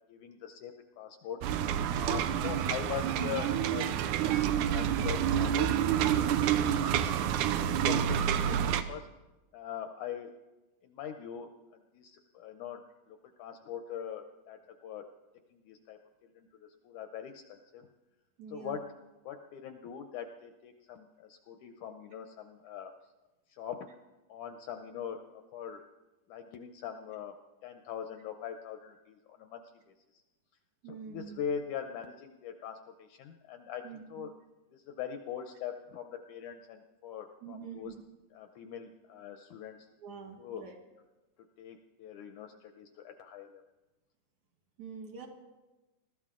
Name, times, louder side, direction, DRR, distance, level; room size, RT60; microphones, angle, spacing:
voice 1, 0.0-1.4 1.9-7.2 7.6-9.1 9.5-10.4 10.8-12.8 13.1-15.1 15.5-17.9 18.5-18.9 19.3-22.9 23.5-23.9 24.3-25.8 26.3-27.3 27.6-29.6 29.9-30.2 30.9-34.3 34.7-37.9 38.3-39.9 40.4-40.7 41.6-43.6, left 8 dB, 75° left, 6 dB, 1.9 m, -42 dB
sound 1, 1.4-8.8, right 9 dB, 80° right, 1.9 m, -28 dB
voice 2, 18.4-18.8 30.8-31.4 33.8-34.3 37.4-38.0 40.0-40.8 44.8-45.3, right 7 dB, 60° right, 1 dB, 2.8 m, -45 dB
21.0 x 13.5 x 3.7 m, 1.1 s
omnidirectional pair, 4.0 m